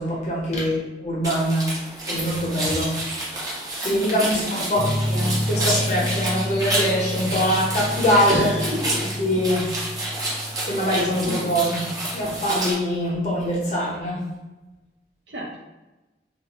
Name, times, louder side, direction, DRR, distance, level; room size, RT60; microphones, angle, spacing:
voice 1, 0.0-3.4 3.8-8.5 9.2-9.7 10.7-11.8 12.1-14.2, equal, 40° left, -5 dB, 1.0 m, -23 dB
sound 1, 1.2-12.7, right 1 dB, 20° right, 0.7 m, -29 dB
voice 2, 3.9-5.3 8.3-9.1 11.3-11.5 15.3-15.6, equal, 65° right, -3 dB, 0.8 m, -30 dB
sound 2, 4.8-12.4, equal, 60° left, 0.4 m, -30 dB
2.6 x 2.3 x 3.0 m, 1.1 s
head